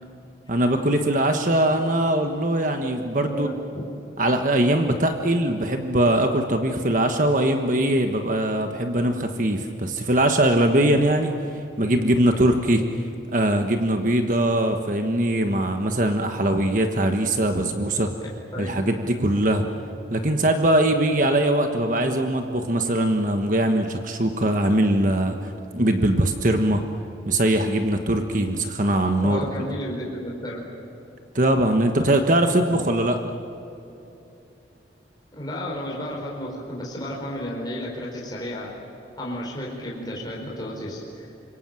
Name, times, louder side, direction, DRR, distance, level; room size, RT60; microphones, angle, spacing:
voice 1, 0.5-3.5 4.2-12.8 13.3-18.1 18.6-19.6 20.1-26.8 27.2-29.4 31.3-33.2, right 1 dB, 45° right, 5 dB, 1.3 m, -21 dB
voice 2, 3.3-3.9 18.5-18.9 29.2-30.6 35.3-38.7 39.2-41.3, equal, 20° left, -3 dB, 4.4 m, -32 dB
26.5 x 23.5 x 7.7 m, 2.8 s
head